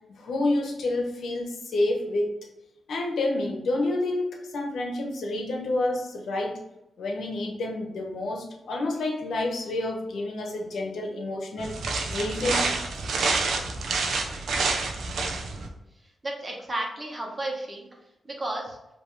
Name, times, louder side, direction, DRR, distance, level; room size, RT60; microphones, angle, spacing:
voice 1, 0.2-2.4 2.9-6.6 7.0-11.7 12.1-12.7, left 2 dB, 80° left, 1 dB, 1.1 m, -29 dB
sound 1, 11.6-15.7, right 3 dB, 80° right, 0.7 m, -28 dB
voice 2, 16.0-17.9 18.2-18.8, right 1 dB, 30° right, -1 dB, 1.3 m, -33 dB
5.2 x 3.0 x 3.2 m, 0.92 s
cardioid pair, 85°, 0 cm